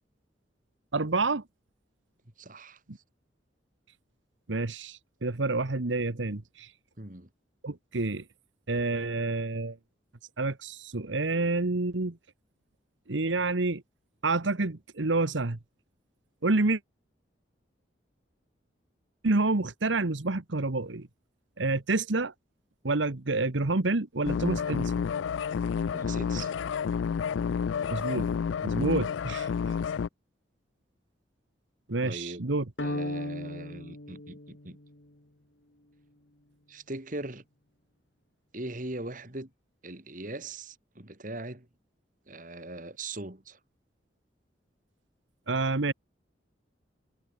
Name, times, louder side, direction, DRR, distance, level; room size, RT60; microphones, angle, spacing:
voice 1, 0.9-1.4 4.5-6.7 7.6-8.2 8.7-9.8 10.4-12.2 13.1-13.8 14.2-15.6 16.4-16.8 19.2-21.1 21.6-22.3 22.8-24.9 27.9-28.3 28.6-29.5 31.9-32.6 45.5-45.9, right 3 dB, 90° right, 1.3 m, -28 dB
voice 2, 2.4-2.8 7.0-7.3 25.9-26.5 32.0-32.4 32.8-34.8 36.7-37.4 38.5-39.5 39.8-41.7 42.3-43.6, right 2 dB, 45° right, 2.7 m, -40 dB
sound 1, 24.2-30.1, left 6 dB, 90° left, 0.4 m, -30 dB
sound 2, 32.8-35.1, left 1 dB, 65° left, 2.5 m, -36 dB
head